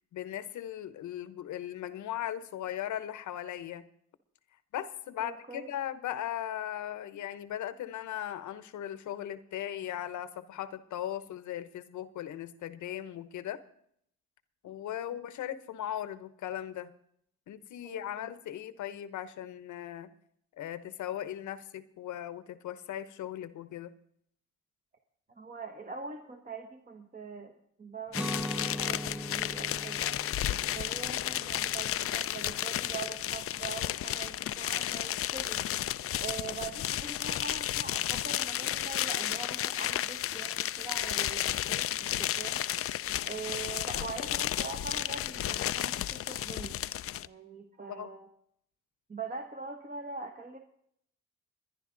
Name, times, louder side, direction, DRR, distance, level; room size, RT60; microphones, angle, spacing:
voice 1, 0.1-3.9 4.7-13.6 14.6-16.9 17.5-20.1 20.6-23.9 36.4-36.6 47.9-48.1, left 11 dB, 75° left, 13 dB, 0.9 m, -38 dB
voice 2, 5.2-5.7 17.8-18.3 25.3-27.5 27.8-30.2 30.7-35.6 36.1-42.6 43.2-46.8 47.3-48.3 49.1-50.6, right 4 dB, 30° right, 5 dB, 1.2 m, -43 dB
sound 1, 28.1-47.3, left 12 dB, 50° left, 0.4 m, -33 dB
Guitar, 28.1-34.0, equal, 5° right, 0.7 m, -41 dB
21.0 x 11.0 x 3.9 m, 0.69 s
cardioid pair, 90°, 30 cm